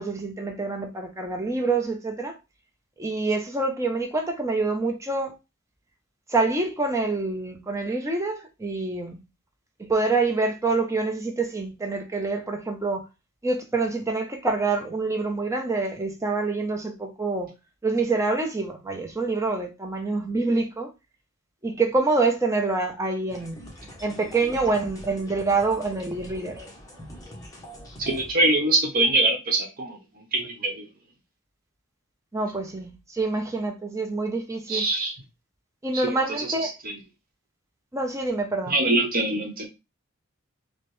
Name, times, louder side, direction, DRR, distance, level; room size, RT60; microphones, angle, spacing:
voice 1, 0.0-2.4 3.0-5.4 6.3-9.2 9.9-13.0 13.4-17.5 17.8-20.9 21.6-23.5 24.0-26.6 32.3-34.8 35.8-36.7 37.9-38.8, right 3 dB, 15° right, 0.7 m, -26 dB
sound 1, 23.3-28.3, equal, 15° left, 0.9 m, -43 dB
voice 2, 28.0-30.9 34.7-35.1 35.9-37.0 38.7-39.7, right 2 dB, 45° right, 1.0 m, -24 dB
4.9 x 2.1 x 3.1 m
head